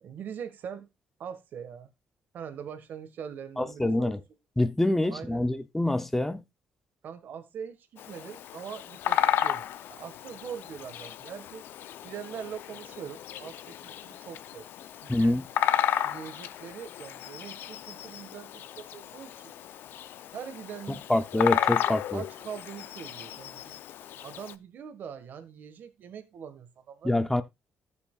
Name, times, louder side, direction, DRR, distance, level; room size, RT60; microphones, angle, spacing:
voice 1, 0.0-0.9 1.2-1.9 2.3-4.1 5.1-5.4 7.0-11.7 12.0-14.7 15.0-15.4 16.0-19.5 20.3-21.1 22.1-23.6 24.2-27.4, right 7 dB, 60° right, 1.6 m, -42 dB
voice 2, 3.6-4.2 4.6-6.4 15.1-15.4 20.9-22.2 27.0-27.4, left 1 dB, 5° left, 0.7 m, -26 dB
Bird vocalization bird call bird song, 8.0-24.5, left 11 dB, 75° left, 0.6 m, -33 dB
14.0 x 7.1 x 2.4 m
cardioid pair, 110°, 4 cm